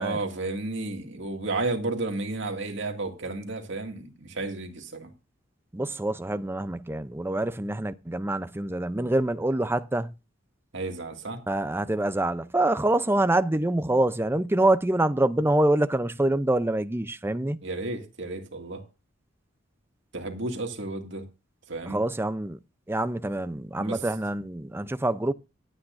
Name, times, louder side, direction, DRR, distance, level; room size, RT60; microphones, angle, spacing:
voice 1, 0.0-5.1 10.7-11.4 17.6-18.8 20.1-21.2 21.7-22.0 23.8-24.0, right 2 dB, 65° right, 2.2 m, -32 dB
voice 2, 5.7-10.1 11.5-17.6 21.9-22.6 22.9-25.3, right 1 dB, 10° right, 0.5 m, -25 dB
24.5 x 8.6 x 2.6 m
head